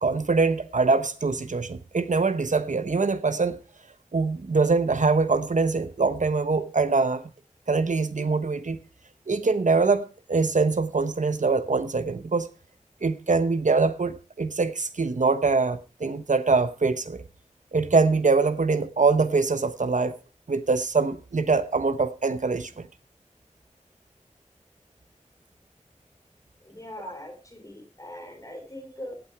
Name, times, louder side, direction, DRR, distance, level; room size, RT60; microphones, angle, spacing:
voice 1, 0.0-3.6 4.1-7.2 7.7-8.8 9.3-12.5 13.0-17.2 17.7-20.1 20.5-22.9, right 4 dB, 80° right, 0.9 m, -23 dB
voice 2, 26.6-29.2, left 1 dB, 25° left, 3.7 m, -41 dB
16.5 x 9.0 x 4.6 m
wide cardioid pair, 60°, 13 cm